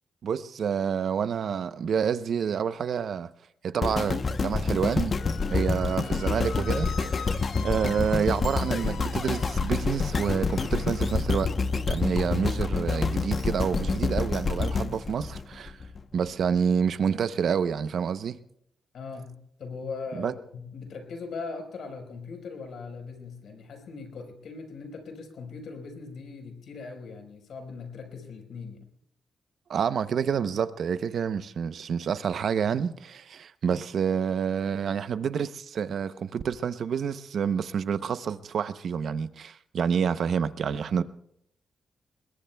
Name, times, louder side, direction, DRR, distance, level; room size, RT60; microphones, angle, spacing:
voice 1, 0.2-3.3 3.6-5.1 5.5-7.2 7.6-11.5 11.9-15.8 16.1-18.4 20.1-20.3 29.7-41.0, right 7 dB, 65° right, 0.7 m, -28 dB
sound 1, 3.8-16.0 16.6-16.7, left 4 dB, 40° left, 0.8 m, -28 dB
Squeak, 5.1-11.2, left 6 dB, 90° left, 4.0 m, -43 dB
voice 2, 18.9-28.9, left 4 dB, 75° left, 4.4 m, -40 dB
29.0 x 21.5 x 2.3 m
cardioid pair, 120°, 0 cm